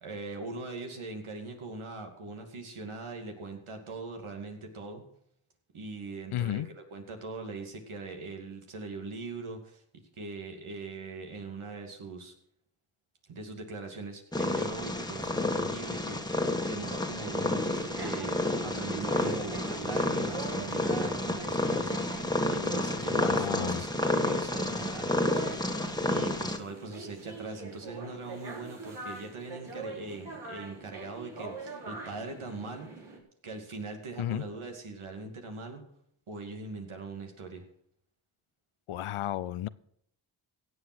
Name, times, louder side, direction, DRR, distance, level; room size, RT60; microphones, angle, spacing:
voice 1, 0.0-5.0 5.7-12.3 13.3-25.8 26.1-32.9 33.4-35.8 36.3-37.6, right 3 dB, 75° right, 3 dB, 2.6 m, -41 dB
voice 2, 6.3-6.7 23.1-23.8 34.2-34.4 38.9-39.7, left 12 dB, 80° left, 18 dB, 0.7 m, -33 dB
Purr, 14.3-26.6, left 1 dB, 10° left, 1.7 m, -30 dB
sound 1, 17.2-33.2, right 3 dB, 55° right, 4.2 m, -43 dB
16.0 x 8.1 x 6.2 m, 0.73 s
cardioid pair, 45°, 50 cm